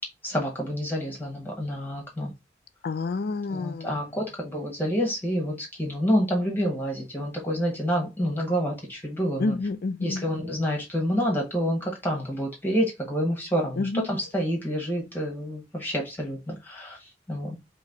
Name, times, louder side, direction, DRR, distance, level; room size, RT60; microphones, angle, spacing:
voice 1, 0.2-2.3 3.5-9.5 10.0-17.6, equal, 10° left, 1.1 m, -28 dB
voice 2, 2.8-4.1 9.4-10.3 13.8-14.1, left 3 dB, 55° left, 0.5 m, -29 dB
4.1 x 2.8 x 3.9 m
head